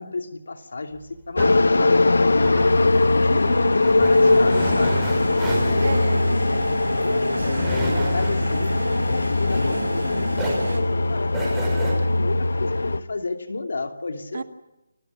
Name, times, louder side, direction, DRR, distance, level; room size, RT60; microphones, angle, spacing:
voice 1, 0.0-2.7 3.1-5.0 5.7-6.2 7.0-14.4, left 3 dB, 70° left, 2.7 m, -31 dB
sound 1, 0.9-10.0 10.3-11.9, right 1 dB, 5° right, 6.0 m, -33 dB
sound 2, 1.4-13.0, left 2 dB, 90° left, 1.1 m, -20 dB
voice 2, 3.3-3.7 5.8-6.7 14.3-14.4, right 4 dB, 55° right, 1.9 m, -33 dB
sound 3, 4.1-10.8, right 2 dB, 80° right, 6.4 m, -31 dB
29.0 x 13.0 x 9.5 m
hypercardioid pair, 170°, 0 cm